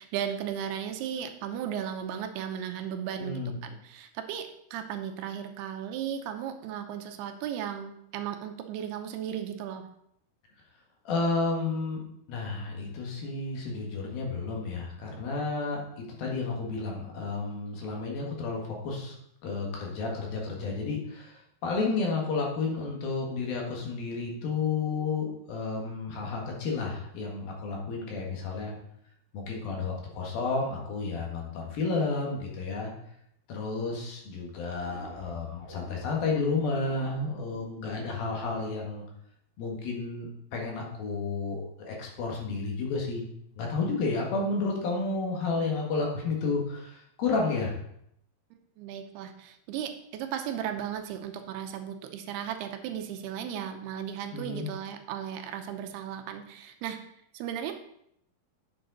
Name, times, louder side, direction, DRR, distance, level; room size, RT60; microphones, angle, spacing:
voice 1, 0.0-9.9 48.5-57.0 57.3-57.7, right 9 dB, 80° right, 6 dB, 2.6 m, -36 dB
voice 2, 3.2-3.6 11.0-12.0 12.3-19.2 19.4-28.7 29.3-32.9 33.5-39.1 39.6-43.3 43.6-47.7 54.3-54.7, left 3 dB, 65° left, -1 dB, 3.2 m, -31 dB
sound 1, 34.6-37.8, left 1 dB, 85° left, 4.7 m, -49 dB
9.0 x 7.0 x 3.9 m, 0.73 s
omnidirectional pair, 4.8 m